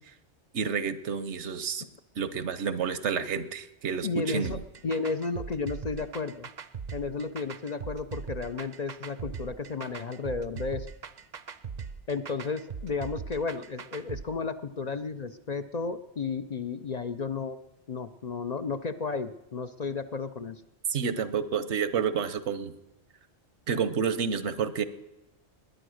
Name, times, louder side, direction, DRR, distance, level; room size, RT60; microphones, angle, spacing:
voice 1, 0.5-1.8 2.2-4.6 20.9-22.7 23.7-24.8, right 6 dB, 75° right, 14 dB, 1.2 m, -29 dB
voice 2, 4.0-6.5 6.9-10.9 12.1-17.6 17.9-20.6, left 4 dB, 45° left, 9 dB, 0.6 m, -33 dB
sound 1, 4.4-14.2, right 6 dB, 45° right, 0.7 m, -40 dB
19.5 x 10.5 x 6.4 m, 0.96 s
omnidirectional pair, 1.2 m